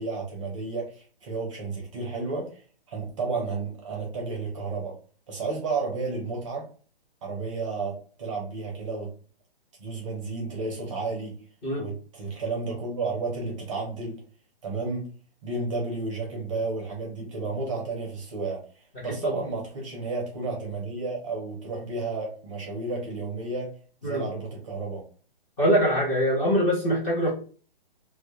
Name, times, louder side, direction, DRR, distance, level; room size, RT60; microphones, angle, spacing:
voice 1, 0.0-2.6 2.9-4.9 5.3-6.7 7.2-9.1 9.8-11.4 11.8-14.2 14.6-15.1 15.4-18.6 19.0-23.7 24.0-25.0, right 3 dB, 35° right, 0 dB, 0.6 m, -32 dB
voice 2, 25.6-27.3, equal, 15° left, -7 dB, 0.7 m, -23 dB
2.2 x 2.1 x 2.8 m, 0.40 s
hypercardioid pair, 155°, 30 cm